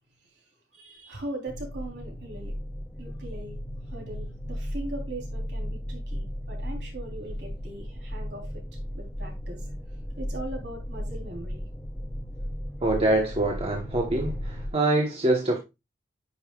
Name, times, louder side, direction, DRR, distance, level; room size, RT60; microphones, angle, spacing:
voice 1, 0.7-2.5 3.0-3.6 3.9-8.6 8.9-9.6 10.2-11.6, right 1 dB, 70° right, 3.4 m, -40 dB
sound 1, 1.5-14.7, equal, 10° left, 0.7 m, -35 dB
voice 2, 12.8-15.6, right 2 dB, 35° right, 1.1 m, -25 dB
9.6 x 5.6 x 2.3 m
head